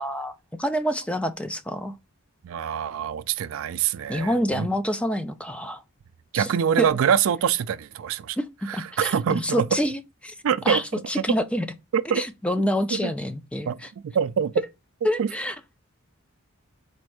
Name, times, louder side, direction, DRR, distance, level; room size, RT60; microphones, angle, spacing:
voice 1, 0.0-1.9 4.1-5.8 6.3-6.5 6.8-6.9 8.4-10.3 10.7-11.7 12.2-13.9 15.0-15.5, equal, 5° left, 0.3 m, -27 dB
voice 2, 2.4-4.7 6.3-8.4 8.7-9.8 10.4-11.3 11.9-12.2 12.9-13.1 13.7-13.8 14.0-14.5 15.2-15.3, right 8 dB, 70° right, 0.3 m, -25 dB
4.2 x 2.6 x 4.6 m
head